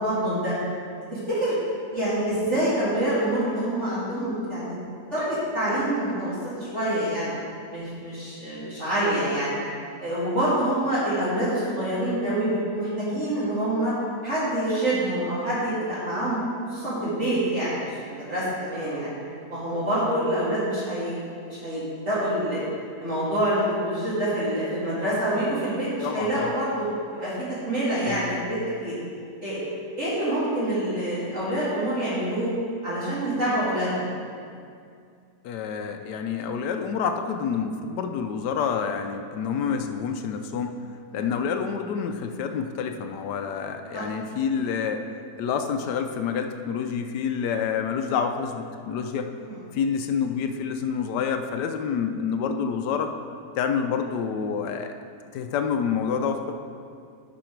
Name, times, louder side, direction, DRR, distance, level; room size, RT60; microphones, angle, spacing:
voice 1, 0.0-0.5 1.1-4.7 5.1-7.3 7.7-9.6 10.0-13.9 14.2-16.4 16.7-19.2 19.5-21.2 21.4-22.6 23.0-26.9 27.1-27.3 27.7-28.9 29.4-29.6 30.0-32.5 32.8-34.1 41.1-41.3 43.9-44.0 49.4-49.6, right 1 dB, 45° right, -10 dB, 2.3 m, -26 dB
voice 2, 26.0-26.5 28.0-28.3 35.4-40.8 41.1-45.0 45.4-49.3 49.7-53.1 53.6-55.0 55.3-56.5, left 6 dB, 85° left, 6 dB, 1.2 m, -28 dB
11.5 x 4.8 x 4.6 m, 2.3 s
omnidirectional pair, 1.8 m